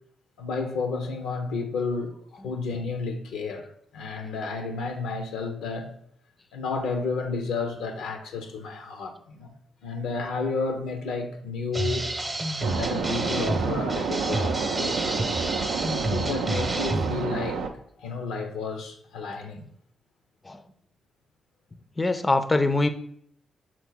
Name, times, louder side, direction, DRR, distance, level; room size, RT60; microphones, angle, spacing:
voice 1, 0.4-5.9 6.5-9.5 9.8-12.1 12.6-15.5 16.0-17.6 18.0-19.7, left 4 dB, 85° left, 0.6 m, -31 dB
sound 1, 11.7-17.3, right 2 dB, 25° right, 0.7 m, -30 dB
sound 2, 12.6-17.7, right 5 dB, 85° right, 0.4 m, -29 dB
voice 2, 22.0-22.9, left 2 dB, 25° left, 0.4 m, -23 dB
5.9 x 2.2 x 3.9 m
supercardioid pair, 50°, 0 cm